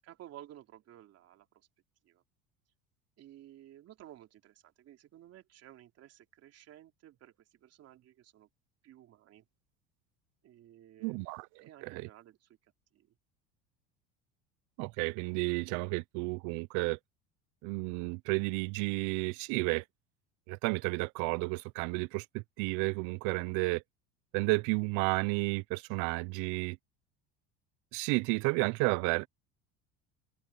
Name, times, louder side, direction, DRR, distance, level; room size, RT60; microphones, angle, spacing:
voice 1, 0.0-1.7 2.0-2.2 3.2-8.5 8.8-9.5 10.4-13.1, right 12 dB, 50° right, 3.5 m, -55 dB
voice 2, 11.0-12.1 14.8-17.0 17.6-19.8 20.5-23.8 24.3-26.8 27.9-29.3, right 27 dB, 70° right, 0.7 m, -32 dB
open air
supercardioid pair, 105°, 31 cm